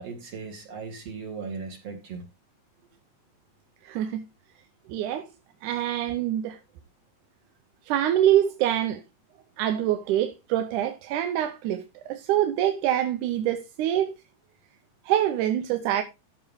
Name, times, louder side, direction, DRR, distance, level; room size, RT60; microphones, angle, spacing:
voice 1, 0.0-2.3, right 5 dB, 55° right, 3.0 m, -37 dB
voice 2, 3.8-4.2 4.9-5.3 5.6-6.6 7.9-9.0 9.6-14.1 15.1-16.0, right 11 dB, 90° right, 2.3 m, -25 dB
13.5 x 7.1 x 3.5 m
omnidirectional pair, 3.5 m